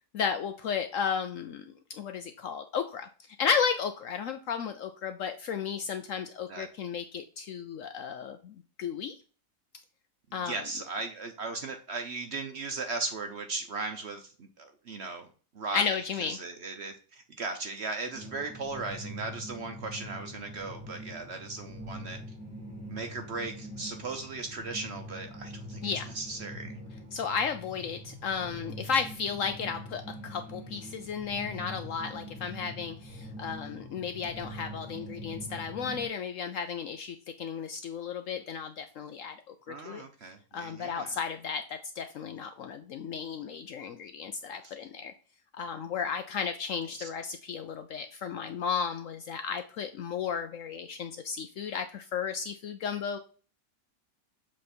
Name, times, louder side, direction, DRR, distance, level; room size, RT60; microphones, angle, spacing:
voice 1, 0.1-3.1 3.4-9.1 10.3-10.6 15.7-16.4 25.8-26.1 27.1-40.0 40.5-45.1 45.5-53.2, left 6 dB, 70° left, 8 dB, 0.8 m, -34 dB
voice 2, 10.4-15.3 15.5-22.2 22.9-26.8 39.7-41.2 44.6-44.7, right 3 dB, 55° right, 6 dB, 0.8 m, -37 dB
sound 1, 18.1-36.1, equal, 5° right, 1.7 m, -43 dB
7.4 x 3.2 x 4.2 m, 0.38 s
omnidirectional pair, 1.7 m